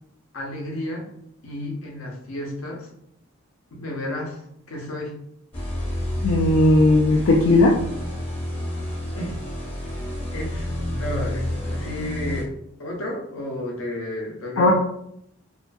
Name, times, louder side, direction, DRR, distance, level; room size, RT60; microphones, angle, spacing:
voice 1, 0.3-1.1 1.4-2.9 3.7-4.4 4.7-5.2 9.1-9.4 10.3-12.5 12.8-14.7, left 1 dB, 85° left, 0 dB, 0.7 m, -32 dB
sound 1, 5.5-12.4, left 1 dB, 30° left, 0.7 m, -29 dB
voice 2, 6.2-7.8 14.6-14.7, left 2 dB, 65° left, -1 dB, 0.3 m, -16 dB
2.5 x 2.4 x 2.2 m, 0.72 s
head